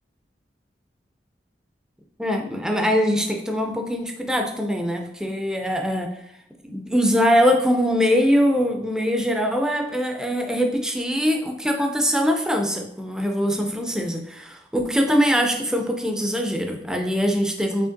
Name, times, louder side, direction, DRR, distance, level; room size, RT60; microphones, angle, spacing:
voice 1, 2.2-6.1 6.6-17.9, equal, 5° right, 3 dB, 0.4 m, -22 dB
4.9 x 3.2 x 2.5 m, 0.72 s
head